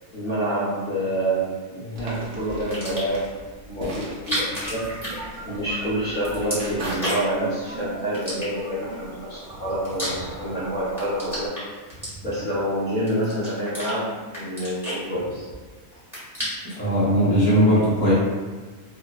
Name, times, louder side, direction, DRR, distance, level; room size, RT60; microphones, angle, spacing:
voice 1, 0.1-3.3 3.7-4.9 5.4-11.5 12.2-15.5, right 1 dB, 55° left, -11 dB, 0.6 m, -27 dB
sound 1, 2.0-7.0, right 1 dB, 60° right, 0.8 m, -38 dB
sound 2, 2.6-3.2 4.1-5.8 6.0-7.4 8.1-8.9 9.5-10.6 10.9-12.6 13.1-13.9 14.3-15.6 15.9-16.8, equal, ahead, 0.9 m, -32 dB
sound 3, 4.6-11.5, right 2 dB, 90° right, 1.1 m, -38 dB
voice 2, 16.8-18.1, equal, 35° right, -12 dB, 0.5 m, -18 dB
2.7 x 2.1 x 2.2 m, 1.4 s
omnidirectional pair, 1.5 m